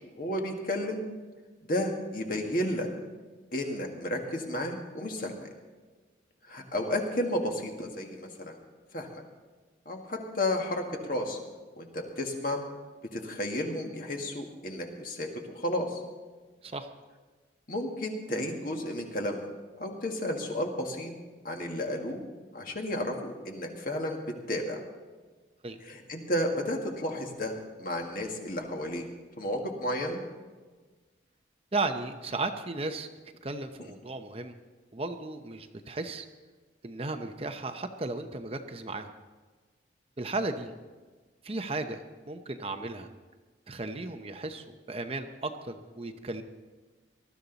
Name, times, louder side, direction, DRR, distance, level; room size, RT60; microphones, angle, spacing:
voice 1, 0.1-1.0 1.7-2.9 3.5-5.5 6.4-8.6 8.9-9.2 9.9-11.4 11.8-12.6 13.1-15.3 15.5-16.0 17.7-19.5 19.8-21.1 21.4-22.2 22.5-24.2 24.5-24.8 25.8-29.1 29.4-30.2, left 1 dB, 50° left, 2 dB, 1.8 m, -32 dB
voice 2, 31.7-33.1 33.4-34.6 34.9-36.3 36.8-39.1 40.2-40.7 41.4-42.0 42.3-43.1 43.7-46.4, right 3 dB, 30° right, 7 dB, 0.7 m, -35 dB
19.5 x 12.5 x 4.0 m, 1.3 s
head